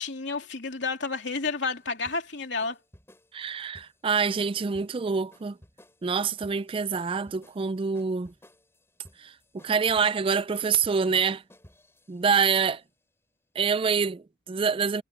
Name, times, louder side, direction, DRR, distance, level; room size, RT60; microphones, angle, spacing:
voice 1, 0.0-2.8, left 4 dB, 70° left, 3.3 m, -30 dB
sound 1, 0.7-12.7, left 1 dB, 15° left, 6.7 m, -57 dB
voice 2, 3.3-5.6 6.0-8.3 9.5-11.4 12.1-12.8 13.6-15.0, right 5 dB, 30° right, 0.4 m, -26 dB
head